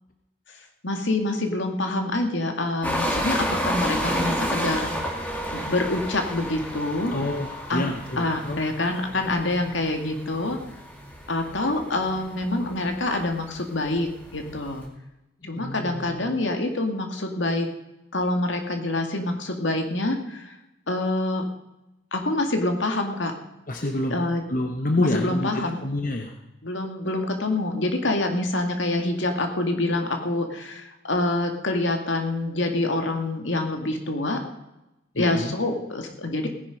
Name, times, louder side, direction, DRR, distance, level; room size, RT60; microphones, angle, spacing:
voice 1, 0.8-5.1 5.4-7.1 7.7-7.8 8.2-10.6 11.3-14.9 15.4-17.7 18.1-20.6 20.9-21.5 22.1-23.3 24.1-24.4 25.0-25.8 26.6-34.4 35.2-36.5, left 2 dB, 70° left, 4 dB, 2.2 m, -26 dB
sound 1, 2.8-14.8, equal, 10° left, 2.2 m, -31 dB
voice 2, 7.1-8.6 15.4-16.3 23.7-24.2 24.5-26.3 35.1-35.5, left 1 dB, 40° left, 4 dB, 1.1 m, -28 dB
17.5 x 10.5 x 5.3 m, 0.93 s
head